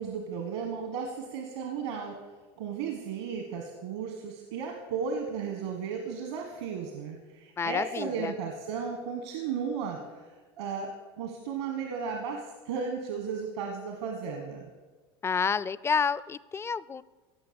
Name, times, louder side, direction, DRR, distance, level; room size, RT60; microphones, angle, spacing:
voice 1, 0.0-2.2 2.6-14.6, right 6 dB, 80° right, 4 dB, 1.5 m, -35 dB
voice 2, 7.6-8.3 15.2-17.0, left 5 dB, 20° left, 19 dB, 0.4 m, -29 dB
16.0 x 6.6 x 7.1 m, 1.3 s
supercardioid pair, 100°, 13 cm